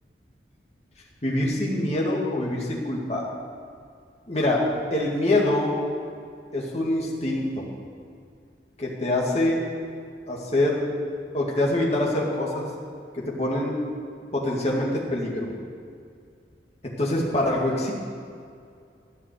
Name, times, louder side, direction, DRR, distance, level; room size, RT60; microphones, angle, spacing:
voice 1, 1.2-3.2 4.3-4.6 4.9-5.7 6.5-7.7 8.8-9.6 10.3-10.9 11.3-12.7 13.1-13.7 14.3-15.5 17.0-17.9, left 1 dB, 35° left, -3 dB, 2.2 m, -24 dB
13.5 x 5.8 x 9.6 m, 2.3 s
head